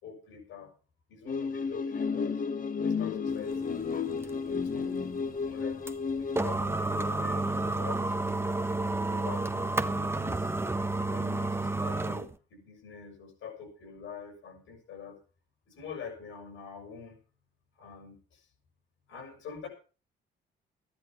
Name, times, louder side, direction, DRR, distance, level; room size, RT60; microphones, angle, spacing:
voice 1, 0.0-0.7 1.1-2.4 2.8-3.8 4.2-5.0 5.4-5.8 6.2-10.5 11.1-15.2 15.7-17.2 17.8-18.5 19.1-19.7, left 5 dB, 80° left, 4 dB, 5.9 m, -45 dB
sound 1, 1.3-6.4, left 5 dB, 45° left, 1.2 m, -32 dB
sound 2, 3.3-12.3, right 2 dB, 10° right, 1.0 m, -31 dB
13.0 x 10.0 x 5.7 m, 0.36 s
cardioid pair, 90°, 20 cm